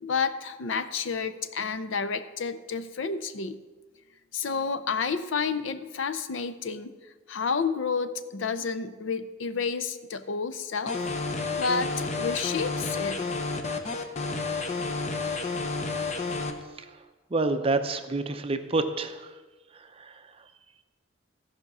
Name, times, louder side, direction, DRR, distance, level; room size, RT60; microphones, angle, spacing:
voice 1, 0.0-3.6 4.3-6.9 7.3-11.0 11.5-13.2, left 5 dB, 70° left, 12 dB, 0.6 m, -30 dB
sound 1, 10.9-16.5, left 3 dB, 35° left, 0.8 m, -30 dB
voice 2, 17.3-19.1, right 3 dB, 30° right, 8 dB, 0.6 m, -27 dB
14.5 x 5.2 x 6.0 m, 1.3 s
head